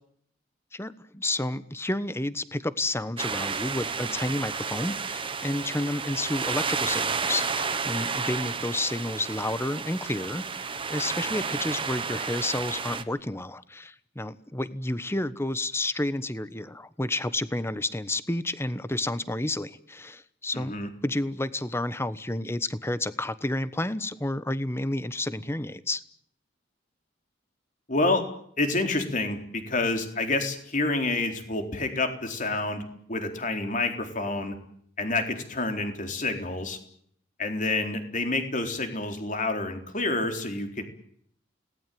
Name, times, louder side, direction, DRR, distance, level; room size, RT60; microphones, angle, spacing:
voice 1, 0.7-26.0, left 1 dB, 15° left, 14 dB, 1.1 m, -30 dB
sound 1, 3.2-13.0, right 5 dB, 30° right, 1.4 m, -31 dB
voice 2, 20.5-20.9 27.9-28.3 28.6-32.8 33.1-34.6 35.0-36.8 37.4-40.8, left 2 dB, 40° left, 5 dB, 4.0 m, -28 dB
29.5 x 19.0 x 9.4 m, 0.66 s
head